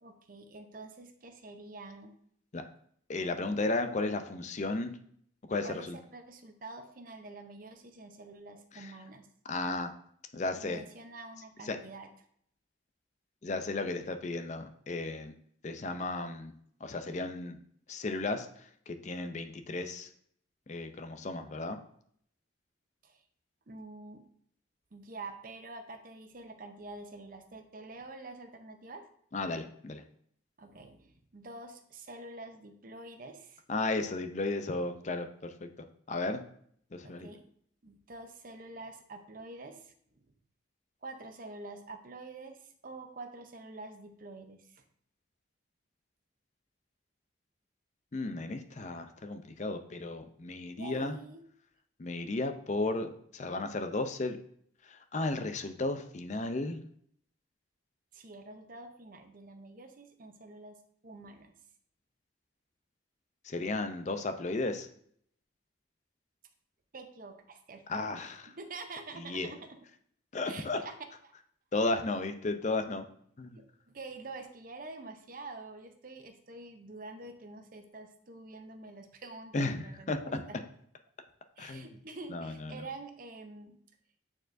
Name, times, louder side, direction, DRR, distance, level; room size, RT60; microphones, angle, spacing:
voice 1, 0.0-2.1 5.6-9.3 10.6-12.1 23.0-23.2 23.7-24.3 24.9-29.1 30.6-33.6 37.0-37.4 37.8-40.2 41.0-44.8 50.7-51.4 58.1-61.5 66.9-68.3 68.6-69.8 70.5-71.0 71.2-71.3 73.5-80.6 81.6-83.8, right 3 dB, 45° right, 7 dB, 0.6 m, -47 dB
voice 2, 3.1-5.0 5.5-6.0 8.7-8.9 9.5-9.9 10.3-10.8 11.6-11.8 13.4-15.3 15.6-16.5 16.8-17.6 17.9-20.1 20.7-21.8 29.3-30.0 33.7-35.7 36.1-36.4 36.9-37.3 48.1-51.2 52.0-54.4 54.8-56.8 63.4-64.9 67.9-68.5 69.2-69.5 70.3-70.8 71.7-73.1 73.4-73.6 79.5-80.4 81.6-81.9 82.3-82.8, left 2 dB, 35° left, 8 dB, 0.5 m, -34 dB
8.6 x 4.5 x 2.6 m, 0.65 s
head